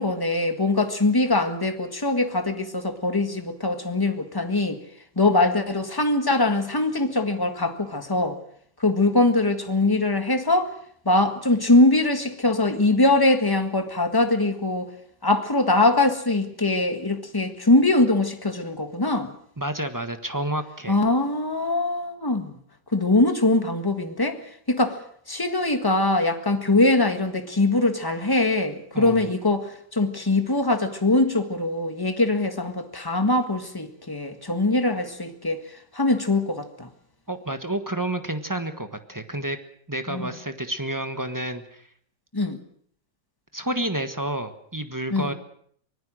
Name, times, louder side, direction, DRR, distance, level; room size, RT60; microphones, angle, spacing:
voice 1, 0.0-4.8 5.1-8.4 8.8-10.7 11.0-14.9 15.2-19.3 20.9-22.6 22.9-24.4 24.7-25.0 25.3-35.6 35.9-36.9 40.1-40.3 42.3-42.6 45.1-45.3, left 2 dB, 15° left, 1.5 m, -22 dB
voice 2, 19.6-21.0 28.9-29.2 37.3-39.6 39.9-41.9 43.5-45.3, right 1 dB, 10° right, 1.1 m, -30 dB
24.5 x 19.5 x 6.3 m
omnidirectional pair, 2.0 m